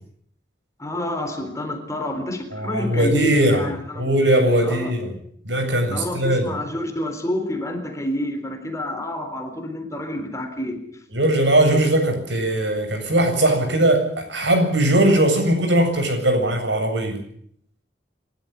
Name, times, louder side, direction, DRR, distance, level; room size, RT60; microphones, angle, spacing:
voice 1, 0.8-4.1 4.6-4.9 5.9-11.0, left 1 dB, 15° left, 6 dB, 3.9 m, -28 dB
voice 2, 2.5-3.7 4.0-5.1 5.4-6.5 11.1-17.2, right 1 dB, 90° right, 5 dB, 7.7 m, -19 dB
27.5 x 13.5 x 9.9 m, 0.66 s
head